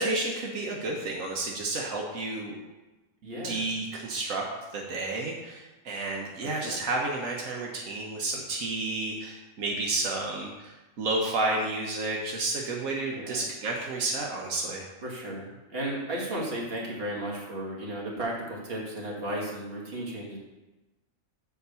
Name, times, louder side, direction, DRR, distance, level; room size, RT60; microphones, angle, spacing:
voice 1, 0.0-2.6 3.4-4.4 4.7-10.7 11.0-14.8, right 2 dB, 85° right, -1 dB, 1.5 m, -31 dB
voice 2, 3.2-3.7 6.4-6.8 13.1-13.5 15.0-20.4, right 1 dB, 45° right, -3 dB, 2.2 m, -34 dB
7.1 x 5.3 x 6.9 m, 1.1 s
omnidirectional pair, 1.3 m